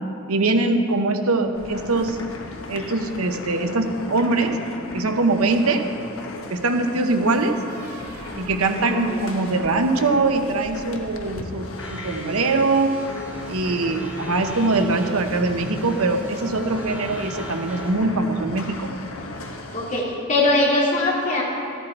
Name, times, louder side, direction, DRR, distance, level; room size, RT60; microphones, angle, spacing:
voice 1, 0.3-2.2 2.7-4.5 4.9-5.8 6.5-7.5 8.4-12.9 13.5-18.9, right 3 dB, 90° right, 6 dB, 0.9 m, -22 dB
sound 1, 1.5-20.0, left 2 dB, 70° left, 1.1 m, -36 dB
sound 2, 4.1-4.9 6.8-10.4, right 1 dB, 40° right, 3.0 m, -41 dB
voice 2, 8.8-9.2 19.7-21.4, left 2 dB, 35° left, -5 dB, 2.6 m, -21 dB
sound 3, 11.8-17.9, right 1 dB, 10° right, 2.3 m, -40 dB
13.5 x 10.5 x 4.5 m, 2.5 s
head